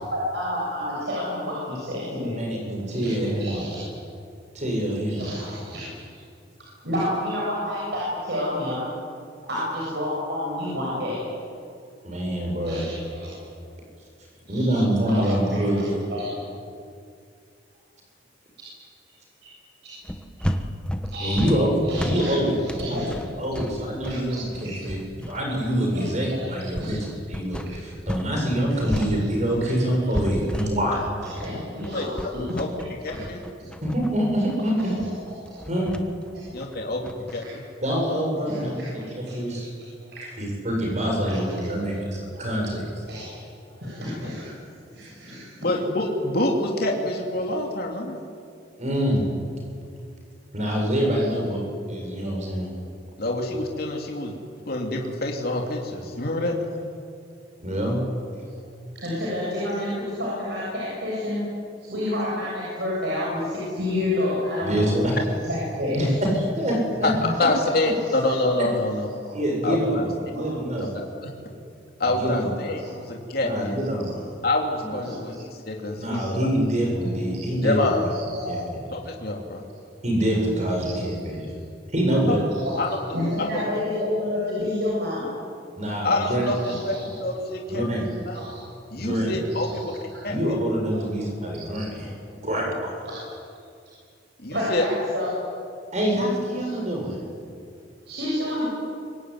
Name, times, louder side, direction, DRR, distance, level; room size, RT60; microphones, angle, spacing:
voice 1, 0.0-2.4 2.9-3.1 3.4-3.8 5.2-6.2 6.8-8.8 9.4-11.3 12.6-13.4 14.5-14.8 15.2-16.3 21.1-21.4 21.8-22.3 22.7-23.2 23.5-23.6 24.0-24.4 24.6-24.9 25.9-26.9 28.9-29.3 30.9-31.0 31.4-32.6 33.1-33.2 34.8-34.9 35.3-35.6 36.3-36.5 37.4-37.5 38.5-39.4 40.0-40.2 41.6-41.9 43.1-43.3 43.8-44.5 44.9-45.5 58.9-61.4 61.8-65.2 65.5-66.2 67.0-67.4 69.2-69.3 70.3-70.4 72.8-72.9 75.0-75.2 76.1-76.3 77.3-77.5 78.3-78.6 82.6-85.4 86.6-87.1 88.3-88.6 89.5-90.2 90.9-91.0 91.7-91.8 93.0-93.2 94.5-95.3 96.5-96.8 97.4-97.6 98.1-98.7, left 1 dB, 60° right, -5 dB, 7.8 m, -30 dB
voice 2, 2.3-3.7 4.5-5.3 12.0-12.8 14.5-16.0 21.2-22.5 22.9-23.0 23.4-25.0 25.3-27.0 27.3-31.0 33.8-35.0 35.7-35.9 37.8-39.7 40.4-42.9 48.8-49.2 50.5-52.7 57.6-58.0 64.6-65.1 65.9-67.1 69.3-70.9 72.2-72.5 73.4-74.2 74.8-74.9 75.9-77.9 78.5-78.6 80.0-81.5 81.9-82.4 85.8-86.4 87.7-88.1 88.9-89.4 90.3-92.1 92.4-92.9 95.9-97.2, equal, 40° right, 0 dB, 7.5 m, -25 dB
sound 1, 20.0-28.3 28.6-37.3, equal, 5° left, 1.4 m, -33 dB
voice 3, 31.8-32.3 32.5-32.7 33.0-33.4 36.5-37.6 45.6-48.2 53.2-54.3 54.7-56.5 67.0-67.1 67.4-69.1 69.6-70.0 70.8-71.3 72.0-73.8 74.4-76.2 77.6-78.0 78.9-79.6 82.8-83.0 83.5-83.6 86.0-87.8 88.3-88.4 88.9-90.0 90.2-90.6 94.4-94.8, left 2 dB, 55° left, 1 dB, 3.1 m, -26 dB
24.5 x 22.0 x 9.7 m, 2.3 s
head